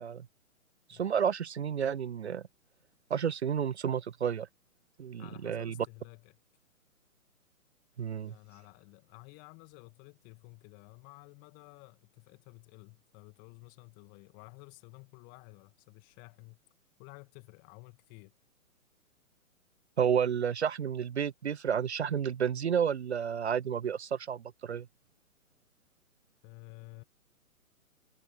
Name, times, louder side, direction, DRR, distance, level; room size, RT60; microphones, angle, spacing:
voice 1, 0.9-2.4 3.1-4.5 5.0-5.7 8.0-8.3 20.0-24.9, right 8 dB, 50° right, 0.6 m, -31 dB
voice 2, 5.2-6.4 8.2-16.6 17.0-18.3 26.4-27.0, left 32 dB, 20° left, 2.0 m, -53 dB
figure-of-eight pair, 130°, 43 cm